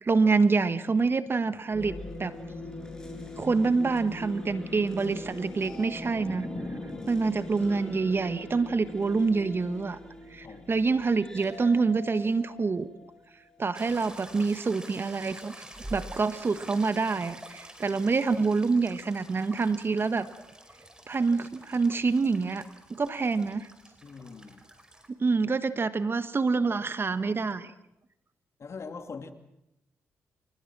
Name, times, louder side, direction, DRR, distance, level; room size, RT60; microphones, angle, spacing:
voice 1, 0.0-2.3 3.4-6.5 7.1-10.0 10.3-12.9 13.6-20.3 21.1-23.7 25.2-27.7, right 4 dB, 40° right, 1.4 m, -26 dB
sound 1, 1.7-13.5, left 1 dB, 10° left, 6.4 m, -41 dB
voice 2, 6.9-7.2 10.4-10.7 24.0-24.6 28.6-29.3, left 4 dB, 50° left, 2.5 m, -42 dB
sound 2, 13.7-25.1, right 1 dB, 15° right, 4.9 m, -48 dB
28.0 x 20.5 x 6.1 m
supercardioid pair, 55°, 6 cm